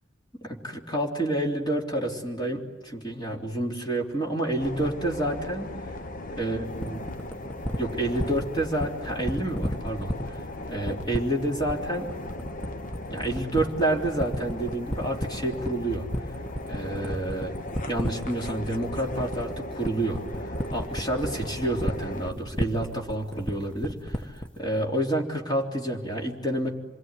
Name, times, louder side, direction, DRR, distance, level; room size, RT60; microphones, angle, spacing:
voice 1, 0.4-5.7 6.4-7.0 7.8-10.4 10.7-12.1 13.1-16.1 16.7-17.5 17.9-26.7, right 1 dB, 20° left, 0 dB, 3.4 m, -29 dB
sound 1, 4.6-22.3, left 1 dB, 45° left, 1.1 m, -38 dB
sound 2, 6.8-24.6, equal, 5° left, 1.3 m, -32 dB
27.0 x 22.0 x 9.9 m, 1.2 s
head